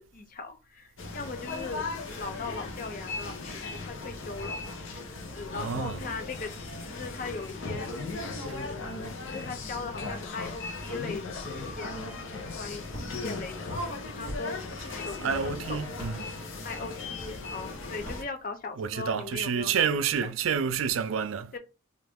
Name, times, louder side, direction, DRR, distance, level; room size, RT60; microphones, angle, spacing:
voice 1, 0.0-1.9 2.1-4.6 5.3-6.5 6.9-7.9 8.4-12.0 12.5-13.8 14.1-15.8 16.6-20.3 21.5-21.6, left 4 dB, 40° left, 0.6 m, -39 dB
sound 1, 1.0-18.2, left 3 dB, 75° left, 0.8 m, -37 dB
voice 2, 5.5-6.0 15.2-16.4 18.8-21.5, right 7 dB, 80° right, 0.4 m, -29 dB
sound 2, 12.9-13.1 14.3-14.4 15.9-16.2 17.9-18.2, equal, 20° left, 1.5 m, -39 dB
3.1 x 2.5 x 3.5 m
head